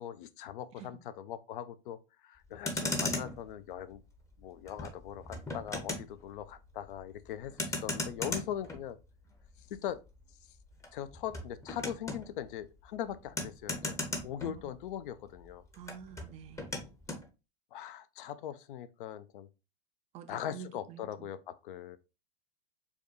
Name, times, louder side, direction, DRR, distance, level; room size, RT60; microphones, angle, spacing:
voice 1, 0.0-4.0 4.4-9.0 9.7-10.0 10.9-14.0 14.2-15.6 17.7-19.5 20.3-22.0, left 10 dB, 60° left, 0.5 m, -41 dB
Motor vehicle (road), 2.4-15.1 15.3-17.3, left 2 dB, 10° left, 0.7 m, -39 dB
voice 2, 15.7-16.7 20.1-21.3, right 7 dB, 20° right, 0.3 m, -48 dB
4.6 x 2.2 x 2.9 m
hypercardioid pair, 100°, 30 cm